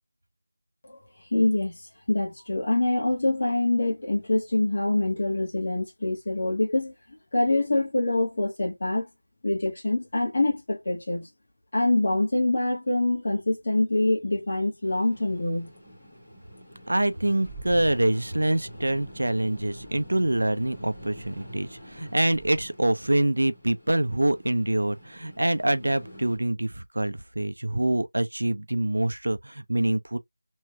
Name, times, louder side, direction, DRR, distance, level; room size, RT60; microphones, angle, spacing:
voice 1, 1.3-1.8 2.1-6.9 7.3-9.1 9.4-11.3 11.7-15.7, left 2 dB, 30° left, 1.3 m, -25 dB
sound 1, 14.8-26.4, equal, 5° left, 1.1 m, -45 dB
voice 2, 16.9-30.2, right 1 dB, 80° right, 0.5 m, -25 dB
3.1 x 3.1 x 2.2 m
figure-of-eight pair, 180°, 0 cm